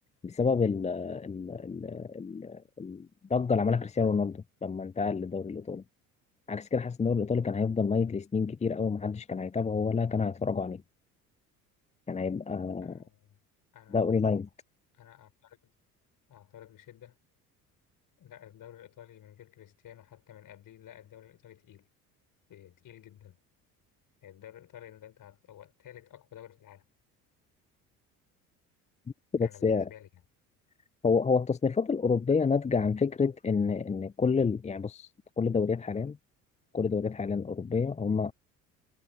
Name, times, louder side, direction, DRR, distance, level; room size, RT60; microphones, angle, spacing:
voice 1, 0.2-5.8 6.5-10.8 12.1-13.0 13.9-14.5 29.3-29.9 31.0-35.1 35.4-36.2 36.7-38.3, left 5 dB, 15° left, 0.7 m, -28 dB
voice 2, 12.8-13.4 13.7-14.0 14.9-15.7 16.3-17.2 18.2-21.9 22.5-23.4 24.2-26.8 29.4-30.2, left 11 dB, 45° left, 6.4 m, -52 dB
figure-of-eight pair, 55°, 44 cm